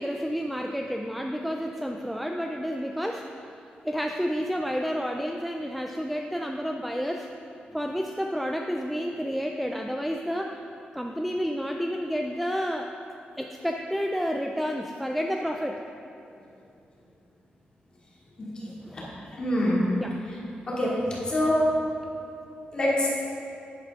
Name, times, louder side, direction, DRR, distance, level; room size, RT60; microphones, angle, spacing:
voice 1, 0.0-3.3 3.8-7.3 7.7-10.6 10.9-12.9 13.4-15.8 18.8-19.0 20.0-20.2, equal, ahead, 3 dB, 0.3 m, -30 dB
voice 2, 18.4-18.7 19.4-19.9 20.7-20.9 21.3-21.7 22.0-22.1 22.7-23.1, left 1 dB, 30° left, -7 dB, 2.6 m, -25 dB
11.0 x 10.0 x 3.7 m, 2.6 s
wide cardioid pair, 175°, 3 cm